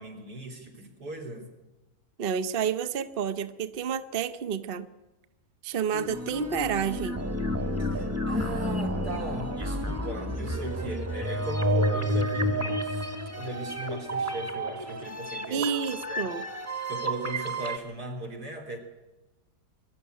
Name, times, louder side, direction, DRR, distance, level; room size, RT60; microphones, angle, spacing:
voice 1, 0.0-1.5 7.8-13.1 13.4-15.7 16.1-16.3 16.9-18.8, right 1 dB, 75° right, 1 dB, 3.8 m, -38 dB
voice 2, 2.2-4.9 5.6-7.3 15.5-16.4, right 7 dB, 45° right, 11 dB, 0.8 m, -30 dB
sound 1, 5.9-17.8, equal, 10° right, 1.4 m, -30 dB
22.5 x 12.5 x 9.4 m, 1.1 s
omnidirectional pair, 1.7 m